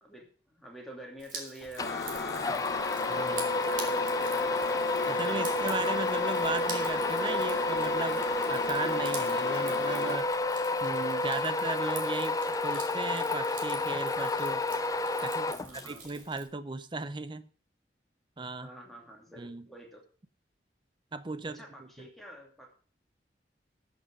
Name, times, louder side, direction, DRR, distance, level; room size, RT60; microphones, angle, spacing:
voice 1, 0.0-3.2 3.5-5.1 5.4-5.6 15.5-16.1 18.6-20.1 21.5-22.7, right 1 dB, ahead, -1 dB, 2.7 m, -48 dB
Drip, 1.2-16.4, right 5 dB, 50° right, 2.5 m, -46 dB
sound 1, 1.8-10.2, left 4 dB, 70° left, 0.8 m, -37 dB
sound 2, 1.8-16.1, left 2 dB, 20° left, 0.5 m, -30 dB
voice 2, 3.1-3.5 5.1-10.3 10.8-14.6 15.2-17.5 18.4-18.7 19.4-19.7 21.1-22.1, right 3 dB, 25° right, 13 dB, 0.6 m, -37 dB
13.0 x 6.1 x 6.6 m, 0.43 s
head